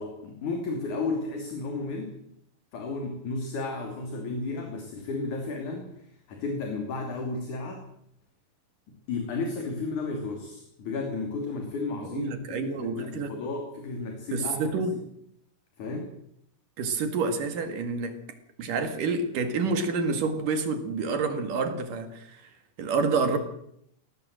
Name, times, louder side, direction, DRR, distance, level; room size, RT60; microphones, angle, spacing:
voice 1, 0.0-2.1 2.7-7.9 9.1-14.7 15.8-16.1 23.3-23.4, left 3 dB, 55° left, 3 dB, 4.2 m, -33 dB
voice 2, 12.1-13.4 14.3-14.9 16.8-18.2 18.6-22.4 22.8-23.4, right 4 dB, 60° right, 7 dB, 3.5 m, -28 dB
20.0 x 17.0 x 7.8 m, 0.73 s
omnidirectional pair, 4.3 m